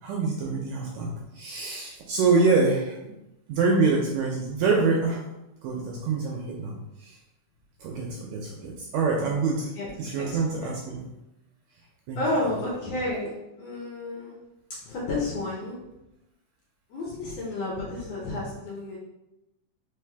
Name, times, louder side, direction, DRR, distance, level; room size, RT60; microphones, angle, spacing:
voice 1, 0.0-3.1 3.5-5.2 5.6-7.2 7.8-9.7 10.0-11.0 12.1-12.2, right 4 dB, 80° right, -1 dB, 1.7 m, -25 dB
voice 2, 12.2-14.4 14.8-15.8 16.9-19.0, left 2 dB, 70° left, -4 dB, 1.7 m, -31 dB
4.7 x 3.3 x 3.4 m, 0.93 s
omnidirectional pair, 3.7 m